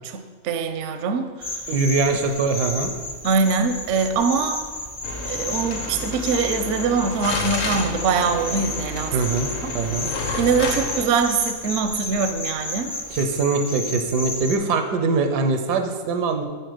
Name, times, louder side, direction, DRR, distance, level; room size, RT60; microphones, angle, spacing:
voice 1, 0.0-1.6 3.2-4.6 5.3-9.2 9.6-9.7 10.4-12.9, right 5 dB, 65° right, 8 dB, 0.7 m, -23 dB
sound 1, 1.4-14.6, left 2 dB, 25° left, 0.6 m, -32 dB
voice 2, 1.7-2.9 9.1-10.1 13.1-16.4, right 4 dB, 85° right, 6 dB, 1.3 m, -22 dB
sound 2, 5.0-11.0, left 3 dB, 50° left, 0.9 m, -30 dB
7.8 x 4.3 x 5.0 m, 1.5 s
omnidirectional pair, 1.7 m